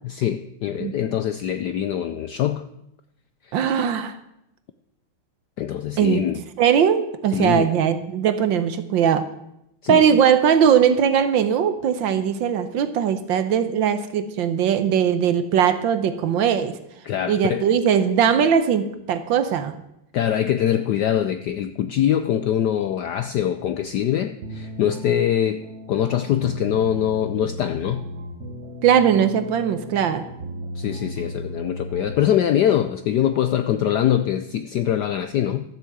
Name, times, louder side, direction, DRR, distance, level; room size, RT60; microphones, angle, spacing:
voice 1, 0.0-2.6 5.6-6.4 7.3-7.7 9.8-10.2 17.0-17.6 20.1-25.6 25.9-28.0 30.8-35.6, left 10 dB, 75° left, 10 dB, 0.9 m, -23 dB
voice 2, 3.5-4.2 6.0-6.2 6.6-9.2 9.9-16.8 17.3-19.8 28.8-30.2, right 8 dB, 65° right, 11 dB, 1.5 m, -20 dB
sound 1, 24.4-32.5, equal, 45° right, 1.0 m, -35 dB
13.0 x 7.4 x 7.8 m, 0.82 s
omnidirectional pair, 2.4 m